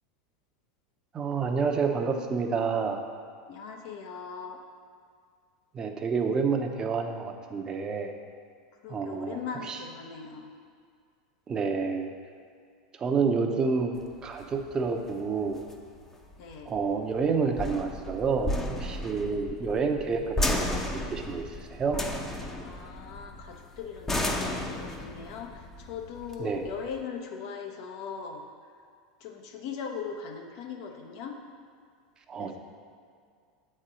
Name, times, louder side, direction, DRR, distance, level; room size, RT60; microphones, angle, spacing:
voice 1, 1.1-3.0 5.7-8.1 8.9-9.4 9.7-9.8 11.5-12.1 13.0-13.9 14.2-15.6 16.6-20.8 21.1-21.4 21.7-22.0 26.4-26.6 32.3-32.6, right 5 dB, 30° right, 4 dB, 0.8 m, -28 dB
voice 2, 3.5-4.6 8.8-10.5 16.4-16.7 22.6-28.4 29.2-31.4 32.4-32.6, left 6 dB, 60° left, 3 dB, 0.9 m, -39 dB
sound 1, 14.0-27.0, left 1 dB, 15° left, 0.8 m, -34 dB
7.4 x 4.4 x 5.0 m, 2.2 s
hypercardioid pair, 105°, 3 cm